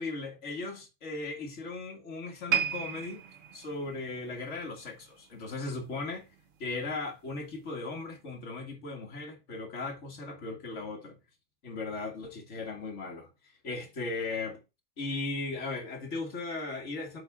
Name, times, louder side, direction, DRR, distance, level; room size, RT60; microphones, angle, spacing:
voice 1, 0.0-3.2 3.5-6.3 6.6-11.2 11.6-14.6 15.0-17.2, left 3 dB, 65° left, 2.1 m, -37 dB
sound 1, 2.5-5.8 6.1-6.4 7.0-7.1, right 8 dB, 75° right, 1.4 m, -35 dB
7.9 x 3.5 x 5.9 m
omnidirectional pair, 1.3 m